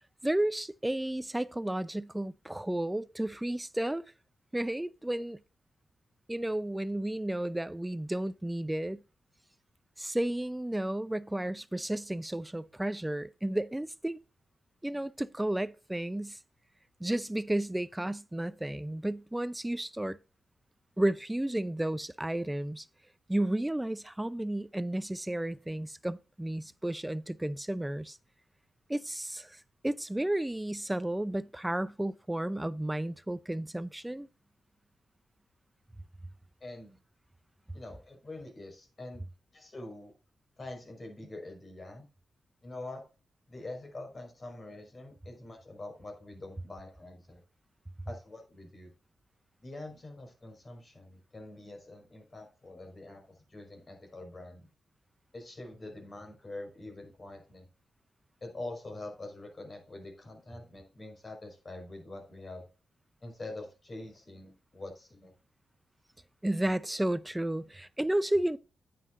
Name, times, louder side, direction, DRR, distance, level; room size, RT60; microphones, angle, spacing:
voice 1, 0.2-4.0 4.5-5.4 6.3-9.0 10.0-14.2 14.8-16.4 17.0-20.2 21.0-22.9 23.3-28.2 28.9-34.3 66.4-68.6, right 1 dB, 10° right, 0.6 m, -32 dB
voice 2, 36.6-37.0 37.7-40.1 40.6-42.1 42.6-43.0 43.5-47.4 48.1-48.9 49.6-54.7 55.3-57.7 58.4-62.7 63.2-65.3, left 2 dB, 40° left, 5.4 m, -45 dB
9.6 x 9.5 x 2.7 m
cardioid pair, 70°, 0 cm